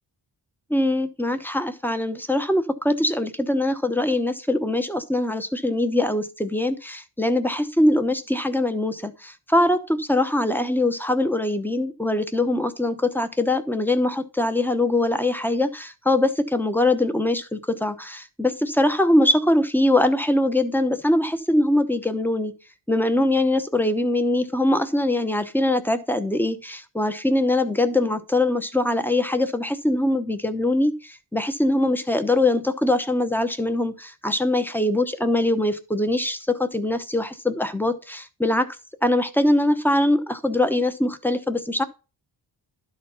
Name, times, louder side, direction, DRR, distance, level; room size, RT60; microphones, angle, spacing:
voice 1, 0.7-22.5 22.9-38.7 39.0-41.8, left 1 dB, 5° left, 0.9 m, -22 dB
12.0 x 4.2 x 5.5 m
wide cardioid pair, 110°, 46 cm